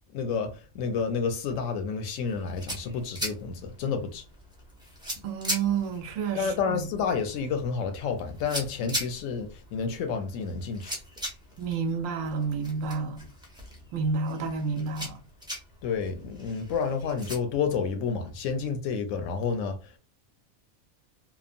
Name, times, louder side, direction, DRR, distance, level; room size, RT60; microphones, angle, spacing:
voice 1, 0.1-4.2 6.3-11.0 15.8-20.0, left 5 dB, 80° left, 1.0 m, -30 dB
sound 1, 2.3-17.4, equal, 5° right, 0.4 m, -40 dB
voice 2, 5.2-6.8 11.6-13.2 13.9-15.2, right 5 dB, 90° right, 1.0 m, -30 dB
2.9 x 2.1 x 2.5 m
omnidirectional pair, 1.3 m